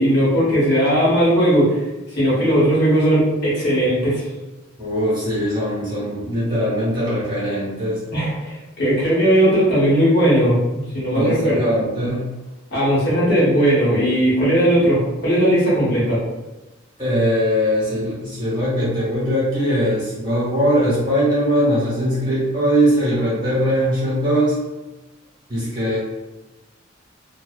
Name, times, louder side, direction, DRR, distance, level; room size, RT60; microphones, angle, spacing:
voice 1, 0.0-1.8 2.1-4.2 8.1-10.6 10.9-11.7 12.7-16.2, equal, 50° left, -7 dB, 1.0 m, -17 dB
voice 2, 4.8-8.0 11.1-12.3 17.0-24.6 25.5-26.0, equal, 20° right, -9 dB, 1.0 m, -20 dB
2.6 x 2.0 x 2.3 m, 1.1 s
head